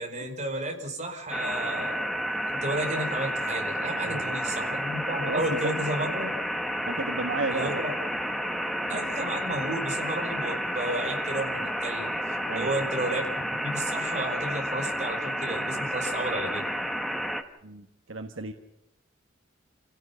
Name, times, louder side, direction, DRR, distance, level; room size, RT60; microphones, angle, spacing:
voice 1, 0.0-2.1 2.6-6.3 7.5-7.9 8.9-12.1 12.5-16.6, right 1 dB, 35° right, 3 dB, 5.1 m, -32 dB
sound 1, 1.3-17.4, equal, ahead, 1.5 m, -31 dB
voice 2, 4.0-4.4 5.3-5.8 6.9-7.7 12.4-12.9 17.6-18.5, right 3 dB, 75° right, 6 dB, 1.5 m, -33 dB
28.0 x 17.0 x 5.8 m, 0.90 s
head